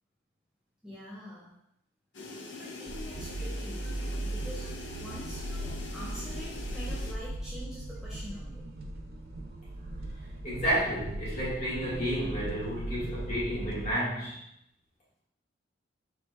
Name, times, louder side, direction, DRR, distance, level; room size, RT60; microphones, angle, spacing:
voice 1, 0.8-1.5 2.5-4.7 5.0-8.7, equal, 5° right, -9 dB, 0.7 m, -45 dB
sound 1, 2.1-7.1, left 2 dB, 70° left, 0.6 m, -43 dB
sound 2, 2.9-13.9, right 1 dB, 50° right, 0.4 m, -38 dB
voice 2, 10.4-14.4, equal, 35° left, -7 dB, 1.5 m, -31 dB
4.5 x 4.3 x 2.2 m, 0.77 s
head